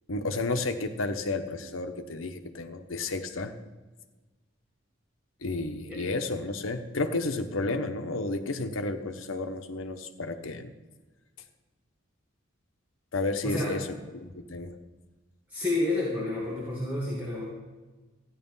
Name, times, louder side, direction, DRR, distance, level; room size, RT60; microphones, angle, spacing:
voice 1, 0.1-3.5 5.4-10.7 13.1-13.9 14.1-14.7, left 2 dB, 85° left, 7 dB, 1.1 m, -32 dB
voice 2, 13.4-13.8 15.5-17.4, left 2 dB, 10° right, -7 dB, 2.3 m, -29 dB
13.5 x 9.9 x 5.6 m, 1.2 s
head